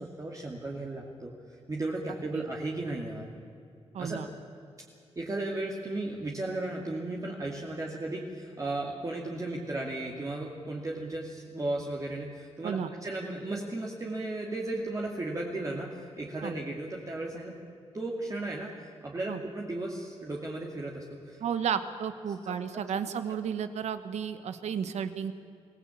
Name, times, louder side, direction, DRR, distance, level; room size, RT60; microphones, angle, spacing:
voice 1, 0.0-3.3 4.0-4.2 5.2-17.5 17.9-21.4 22.4-22.9, right 2 dB, 30° right, -2 dB, 2.6 m, -35 dB
voice 2, 3.9-4.3 12.6-12.9 16.4-16.5 19.3-19.4 21.4-25.3, right 7 dB, 90° right, 10 dB, 1.3 m, -33 dB
23.5 x 17.0 x 8.5 m, 2.4 s
cardioid pair, 95°, 11 cm